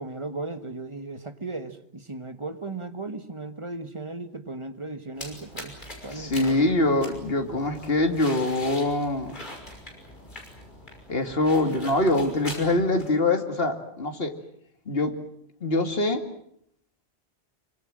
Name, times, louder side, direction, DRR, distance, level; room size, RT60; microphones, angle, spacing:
voice 1, 0.0-5.8 6.0-6.6, right 3 dB, 30° right, 9 dB, 1.5 m, -36 dB
sound 1, 5.2-13.1, left 1 dB, 45° left, 6.1 m, -42 dB
voice 2, 6.1-9.4 11.1-14.3 14.9-15.1 15.6-16.2, left 2 dB, 65° left, 5 dB, 2.6 m, -24 dB
25.5 x 24.5 x 7.6 m, 0.69 s
omnidirectional pair, 1.1 m